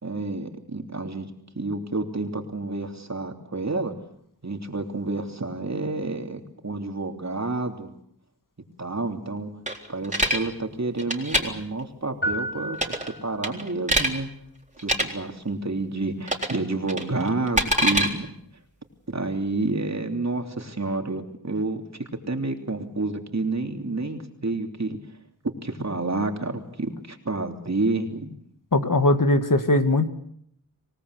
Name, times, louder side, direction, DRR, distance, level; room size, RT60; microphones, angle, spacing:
voice 1, 0.0-1.3 1.5-3.9 4.4-7.9 8.8-9.5 9.9-12.9 13.2-14.3 14.8-18.3 19.1-21.8 22.2-25.0 25.6-28.3, right 2 dB, 45° right, 4 dB, 3.3 m, -29 dB
sound 1, 9.7-10.4 11.0-11.4 12.7-13.1 13.4-14.1 14.8-15.0 16.3-16.6 16.9-18.1, equal, 20° right, 3.9 m, -23 dB
sound 2, 12.2-13.7, right 1 dB, 30° left, 5.7 m, -32 dB
voice 2, 28.7-30.1, left 2 dB, 60° left, 8 dB, 2.2 m, -20 dB
26.0 x 18.5 x 8.2 m, 0.69 s
wide cardioid pair, 55°, 37 cm